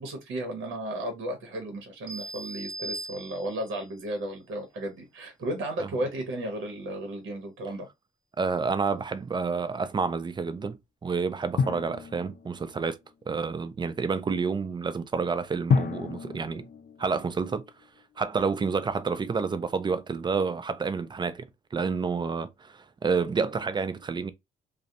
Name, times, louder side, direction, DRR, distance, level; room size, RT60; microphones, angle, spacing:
voice 1, 0.0-7.9, right 1 dB, 80° right, 0.8 m, -34 dB
sound 1, 2.1-3.8, right 2 dB, 45° right, 0.9 m, -39 dB
voice 2, 8.4-13.0 13.3-16.7 17.0-17.6 18.2-24.3, right 5 dB, 25° right, 0.3 m, -29 dB
Drum, 11.6-13.1 15.7-17.9, left 5 dB, 50° left, 0.4 m, -30 dB
2.4 x 2.0 x 2.7 m
cardioid pair, 90°, 20 cm